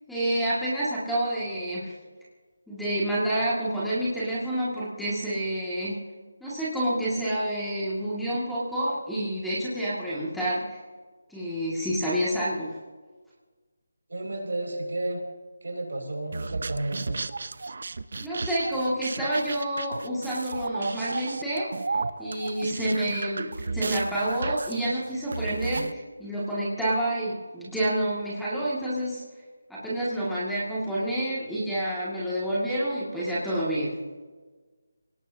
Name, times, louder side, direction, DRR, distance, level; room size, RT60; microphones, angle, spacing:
voice 1, 0.1-1.9 2.7-6.0 6.4-10.8 11.3-12.7 18.2-29.2 29.7-34.0, right 1 dB, ahead, -10 dB, 2.1 m, -28 dB
voice 2, 14.1-15.2 15.6-17.2, right 2 dB, 75° right, 1 dB, 5.8 m, -32 dB
sound 1, 16.3-25.9, right 3 dB, 50° right, 0.7 m, -34 dB
26.5 x 18.0 x 2.8 m, 1.4 s
figure-of-eight pair, 175°, 0 cm